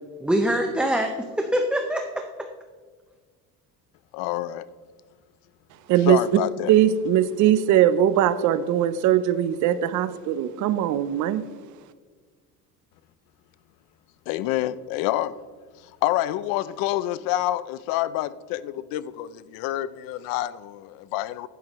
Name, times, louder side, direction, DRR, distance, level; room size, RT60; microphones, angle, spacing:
voice 1, 0.2-2.3, equal, 5° right, 4 dB, 0.5 m, -24 dB
voice 2, 4.1-4.7 6.1-6.7 14.3-15.4 15.8-21.5, left 14 dB, 85° left, 17 dB, 0.6 m, -27 dB
voice 3, 6.7-11.5, right 11 dB, 60° right, 14 dB, 0.6 m, -20 dB
11.0 x 10.5 x 3.0 m, 1.5 s
cardioid pair, 140°, 34 cm